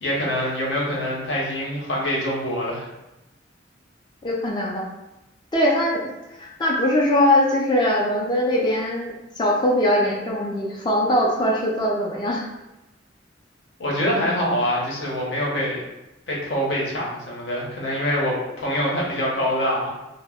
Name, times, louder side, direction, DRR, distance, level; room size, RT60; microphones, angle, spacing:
voice 1, 0.0-2.9 13.8-15.8 16.3-19.9, equal, 65° left, -4 dB, 0.8 m, -25 dB
voice 2, 4.2-4.9 5.5-12.5, left 1 dB, 25° left, -2 dB, 0.3 m, -21 dB
2.1 x 2.0 x 3.4 m, 0.96 s
head